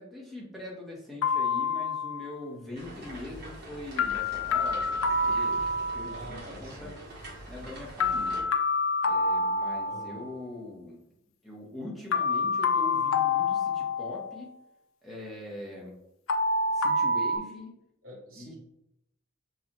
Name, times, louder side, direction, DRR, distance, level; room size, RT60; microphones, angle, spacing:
voice 1, 0.0-6.9 7.5-8.5 9.0-11.0 11.4-14.6 15.0-15.9 16.7-17.7 18.4-18.5, left 2 dB, ahead, -5 dB, 1.0 m, -42 dB
sound 1, 1.2-2.4 4.0-6.3 8.0-10.3 12.1-14.5 16.3-17.4, left 3 dB, 70° left, 0.4 m, -27 dB
sound 2, 2.8-8.4, right 1 dB, 50° right, 1.1 m, -44 dB
voice 2, 6.1-7.0 9.8-10.3 18.0-18.5, right 1 dB, 70° right, -4 dB, 1.6 m, -46 dB
6.5 x 2.4 x 3.0 m, 0.81 s
head